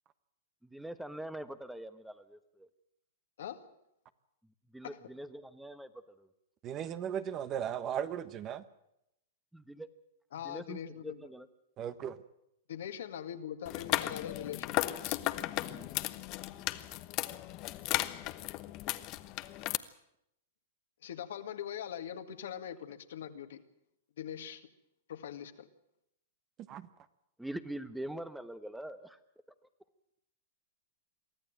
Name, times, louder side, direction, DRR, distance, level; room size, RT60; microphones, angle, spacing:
voice 1, 0.6-2.7 4.7-6.3 9.5-9.9 10.4-11.5 15.6-15.9 27.4-29.2, right 1 dB, 5° right, 11 dB, 1.2 m, -44 dB
voice 2, 6.6-8.6 11.8-12.2 26.7-26.9, right 9 dB, 30° right, 13 dB, 1.3 m, -36 dB
voice 3, 10.3-11.2 12.7-15.2 21.0-23.6 24.2-24.6 25.1-25.7, left 9 dB, 75° left, 7 dB, 2.0 m, -42 dB
sound 1, 13.7-19.8, left 17 dB, 40° left, 1.0 m, -35 dB
23.5 x 14.0 x 9.1 m, 0.81 s
hypercardioid pair, 125°, 0 cm